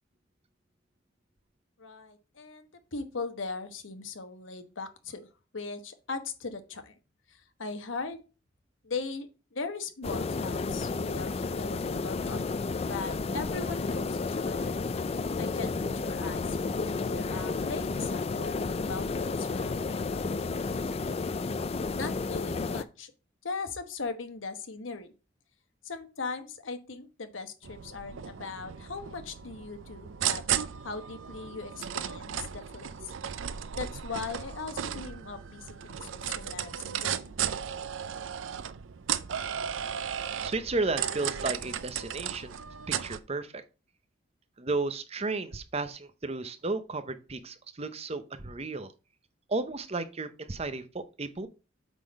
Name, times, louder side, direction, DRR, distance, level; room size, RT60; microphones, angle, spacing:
voice 1, 1.8-5.3 5.5-7.0 7.3-8.2 8.8-14.8 15.4-20.2 21.9-23.1 23.4-25.1 25.8-30.4 30.8-33.1 33.8-37.3, left 4 dB, 85° left, 9 dB, 1.1 m, -39 dB
sound 1, 10.0-22.8, left 4 dB, 30° left, 0.4 m, -32 dB
sound 2, 27.6-43.2, right 9 dB, 80° right, 0.5 m, -35 dB
voice 2, 40.4-42.5 42.9-43.6 44.6-48.9 49.5-51.5, right 3 dB, 30° right, 10 dB, 0.7 m, -33 dB
8.2 x 3.8 x 5.2 m, 0.32 s
head